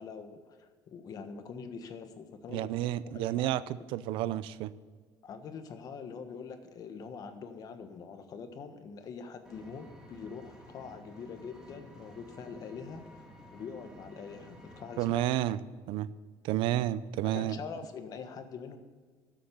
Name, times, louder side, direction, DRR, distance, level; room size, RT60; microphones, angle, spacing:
voice 1, 0.0-2.7 3.0-3.5 5.2-13.2 13.5-15.3 17.2-18.8, left 5 dB, 45° left, 8 dB, 1.4 m, -44 dB
voice 2, 2.5-4.7 15.0-15.6 15.9-16.1 16.4-17.6, right 13 dB, 75° right, 17 dB, 0.5 m, -31 dB
Vehicle, 9.4-15.1, equal, 10° right, 2.6 m, -53 dB
13.0 x 7.7 x 7.1 m, 1.5 s
cardioid pair, 135°, 9 cm